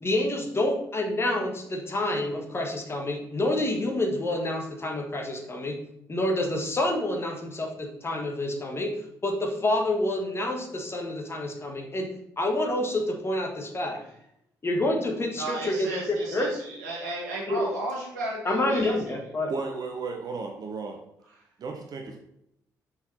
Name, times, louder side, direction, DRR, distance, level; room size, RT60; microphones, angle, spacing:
voice 1, 0.0-5.8 6.1-8.9 9.2-12.1 12.4-14.0 14.6-16.5 17.5-17.6 18.5-19.5, left 1 dB, 30° left, 2 dB, 1.6 m, -28 dB
voice 2, 15.4-19.0, right 2 dB, 75° right, -3 dB, 1.9 m, -33 dB
voice 3, 19.5-21.0 21.6-22.2, right 4 dB, 45° right, 3 dB, 1.0 m, -34 dB
5.9 x 5.8 x 4.3 m, 0.77 s
figure-of-eight pair, 40°, 9 cm